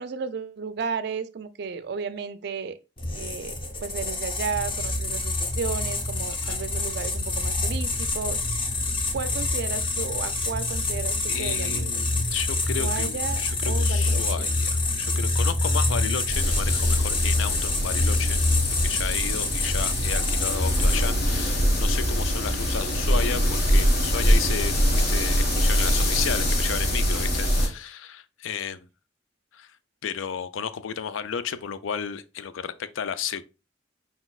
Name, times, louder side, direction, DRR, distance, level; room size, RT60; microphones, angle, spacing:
voice 1, 0.0-2.8 3.1-3.5 3.8-8.4 9.1-12.0 12.7-14.5, right 5 dB, 55° right, 0.4 m, -33 dB
sound 1, 3.0-21.3, left 2 dB, 25° left, 0.6 m, -26 dB
voice 2, 11.3-18.4 18.8-24.7 25.1-28.9 29.5-29.7 30.0-33.4, left 7 dB, 85° left, 0.4 m, -33 dB
sound 2, 16.3-27.7, equal, 55° left, 1.1 m, -23 dB
5.0 x 4.0 x 2.3 m
head